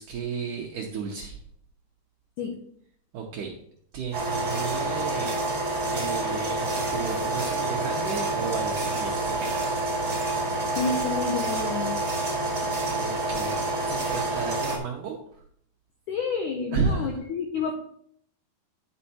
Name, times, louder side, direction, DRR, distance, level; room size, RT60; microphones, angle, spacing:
voice 1, 0.0-1.4 3.1-3.6 3.9-5.4 5.8-9.8 12.8-15.4 16.7-17.2, right 5 dB, 75° right, 0 dB, 1.9 m, -33 dB
sound 1, 4.1-14.8, right 2 dB, 30° right, 1.4 m, -28 dB
voice 2, 10.7-12.0 16.1-17.7, left 5 dB, 85° left, 3 dB, 1.7 m, -29 dB
11.0 x 5.4 x 4.3 m, 0.67 s
omnidirectional pair, 4.8 m